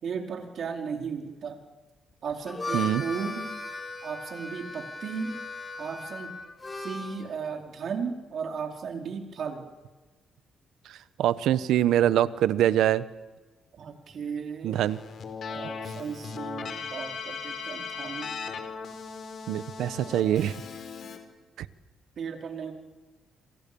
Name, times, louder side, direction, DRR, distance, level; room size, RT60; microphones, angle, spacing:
voice 1, 0.0-1.6 2.2-3.4 4.0-5.4 5.8-6.3 6.8-9.7 13.7-14.8 15.5-18.3 20.0-20.4 22.2-22.7, right 6 dB, 60° right, 3 dB, 4.7 m, -35 dB
Harmonica, 2.3-7.3, left 3 dB, 25° left, 6.6 m, -37 dB
voice 2, 10.9-13.0 14.6-15.0 19.5-20.6 21.6-21.7, right 11 dB, 80° right, 14 dB, 1.2 m, -24 dB
Keyboard (musical), 14.7-21.2, left 5 dB, 60° left, 4.8 m, -38 dB
28.5 x 26.0 x 7.1 m, 1.2 s
cardioid pair, 90°, 0 cm